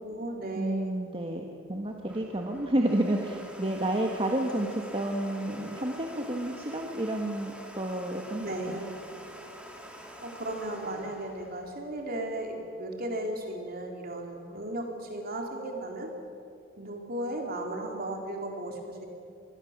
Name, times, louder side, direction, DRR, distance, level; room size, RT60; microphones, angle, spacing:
voice 1, 0.0-0.9 8.4-8.9 10.2-16.1 16.8-19.1, right 1 dB, 50° right, 1 dB, 3.8 m, -35 dB
voice 2, 0.5-8.8, right 1 dB, 30° right, 1 dB, 1.6 m, -30 dB
Domestic sounds home sounds, 1.8-12.4, equal, 5° right, 2.6 m, -46 dB
26.0 x 21.0 x 7.5 m, 2.6 s
head